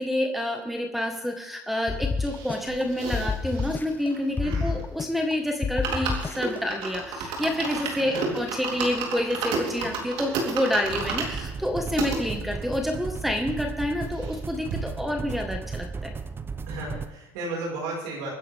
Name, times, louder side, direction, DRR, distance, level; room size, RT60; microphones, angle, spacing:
voice 1, 0.0-16.1, left 1 dB, ahead, 3 dB, 1.7 m, -28 dB
sound 1, 1.9-2.8 3.1-4.1 4.4-5.3 5.6-6.6, left 4 dB, 20° left, 0.6 m, -29 dB
sound 2, 2.2-5.0 5.3-5.4 5.7-12.2 12.8-12.9 13.0-13.1 13.5-14.4 14.7-14.8, right 4 dB, 75° right, 3.7 m, -32 dB
voice 2, 4.4-4.7 8.1-8.3 16.7-18.3, right 2 dB, 90° right, -3 dB, 5.5 m, -34 dB
sound 3, 10.9-17.1, right 5 dB, 25° right, 1.0 m, -35 dB
25.5 x 9.8 x 3.7 m, 0.94 s
supercardioid pair, 100°, 9 cm